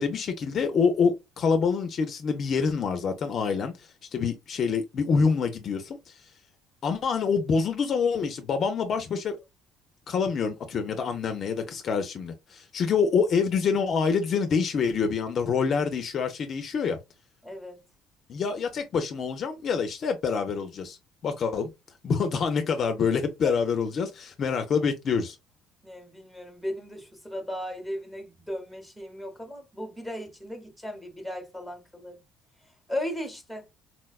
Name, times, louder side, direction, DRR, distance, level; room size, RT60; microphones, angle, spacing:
voice 1, 0.0-6.1 6.8-9.4 10.1-17.0 18.3-21.0 21.2-21.7 22.0-25.4, left 5 dB, 40° left, 0.4 m, -26 dB
voice 2, 17.4-17.8 23.4-23.5 25.8-32.2 32.9-33.7, left 1 dB, ahead, 0.8 m, -36 dB
4.1 x 2.2 x 2.3 m
cardioid pair, 140°, 0 cm